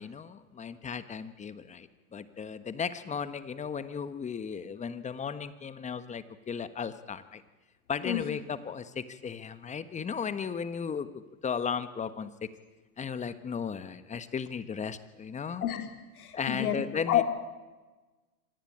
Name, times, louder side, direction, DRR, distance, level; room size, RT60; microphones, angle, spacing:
voice 1, 0.0-7.4 7.9-12.3 13.0-15.6 16.3-17.2, left 6 dB, 15° left, 13 dB, 1.3 m, -35 dB
voice 2, 16.2-16.8 17.1-17.2, left 12 dB, 70° left, 5 dB, 3.7 m, -28 dB
25.0 x 19.0 x 8.8 m, 1.2 s
hypercardioid pair, 115°, 45 cm